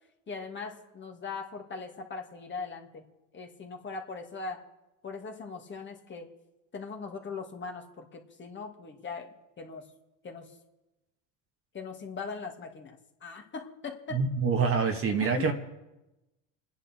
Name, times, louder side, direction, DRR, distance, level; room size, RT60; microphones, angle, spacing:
voice 1, 0.3-3.1 3.3-4.6 5.0-6.3 6.7-9.9 10.2-10.5 11.7-14.2 15.2-15.5, left 4 dB, 30° left, 2 dB, 2.6 m, -40 dB
voice 2, 14.1-15.5, right 5 dB, 35° right, 4 dB, 2.1 m, -26 dB
27.5 x 10.5 x 4.5 m, 1.0 s
supercardioid pair, 95°, 37 cm